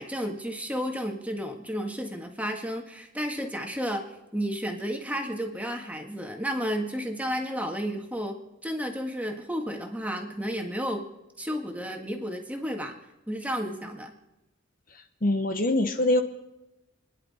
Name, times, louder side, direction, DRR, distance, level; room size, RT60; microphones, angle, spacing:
voice 1, 0.0-4.0 4.3-11.1 11.4-12.9 13.3-14.1, equal, 5° right, 2 dB, 1.8 m, -32 dB
voice 2, 15.2-16.2, left 1 dB, 45° left, 6 dB, 1.1 m, -23 dB
29.0 x 10.5 x 4.3 m, 0.97 s
head